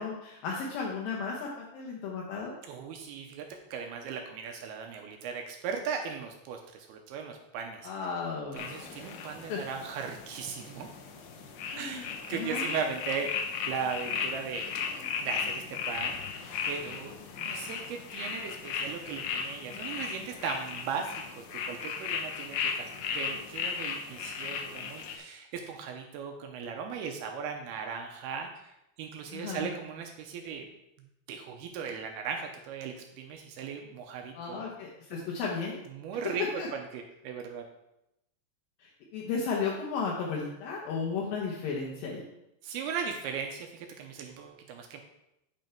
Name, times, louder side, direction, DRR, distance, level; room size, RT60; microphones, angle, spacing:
voice 1, 0.0-2.5 7.8-8.7 9.5-9.6 11.6-12.7 29.3-29.7 34.3-35.8 36.2-36.7 38.8-42.2, left 5 dB, 70° left, -3 dB, 2.4 m, -34 dB
voice 2, 2.7-3.5 3.7-7.9 8.5-10.9 11.8-13.4 13.7-14.7 15.2-16.4 16.7-17.1 17.4-22.9 23.1-28.7 29.0-30.7 31.3-34.7 35.1-35.3 35.9-37.6 42.6-45.0, right 6 dB, 80° right, 3 dB, 2.4 m, -37 dB
sound 1, 8.6-25.2, left 6 dB, 85° left, 1.9 m, -36 dB
9.0 x 5.4 x 4.5 m, 0.85 s
omnidirectional pair, 5.1 m